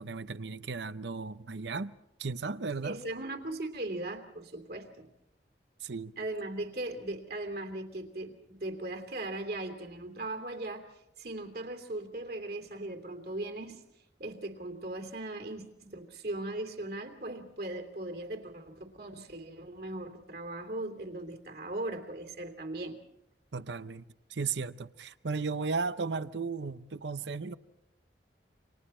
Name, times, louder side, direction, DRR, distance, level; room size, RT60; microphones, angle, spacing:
voice 1, 0.0-1.9 2.2-3.0 5.8-6.1 23.5-24.0 24.3-27.6, right 4 dB, 80° right, 0.7 m, -35 dB
voice 2, 2.8-5.1 6.2-10.9 11.2-13.8 14.2-23.0, right 2 dB, 60° right, 3.0 m, -38 dB
29.0 x 26.5 x 4.4 m
head